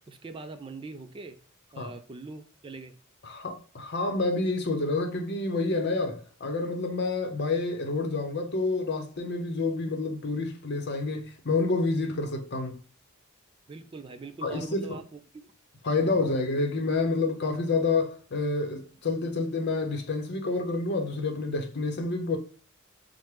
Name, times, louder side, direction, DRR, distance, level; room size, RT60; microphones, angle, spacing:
voice 1, 0.0-1.4 1.7-2.9 13.7-15.2 16.0-16.3, right 3 dB, 25° right, 0.4 m, -42 dB
voice 2, 3.2-12.8 14.4-15.0 15.8-22.4, left 3 dB, 55° left, 0.7 m, -28 dB
5.8 x 2.1 x 3.2 m
head